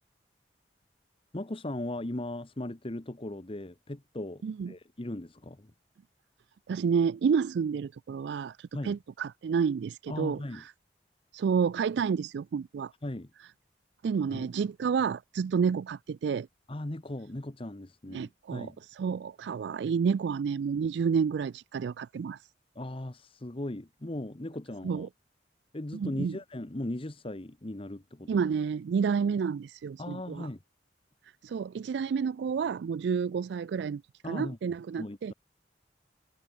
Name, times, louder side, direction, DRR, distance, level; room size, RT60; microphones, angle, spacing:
voice 1, 1.3-5.7 8.7-9.0 10.1-10.6 13.0-13.3 14.3-14.5 16.7-18.8 22.7-25.1 25.7-28.5 30.0-30.6 34.2-34.6 35.0-35.3, left 1 dB, 30° left, 1.1 m, -38 dB
voice 2, 6.7-10.7 11.3-12.9 14.0-16.5 18.1-22.5 24.8-25.1 25.9-26.4 28.3-30.5 31.4-34.0 34.3-35.3, right 6 dB, 70° right, 0.3 m, -30 dB
head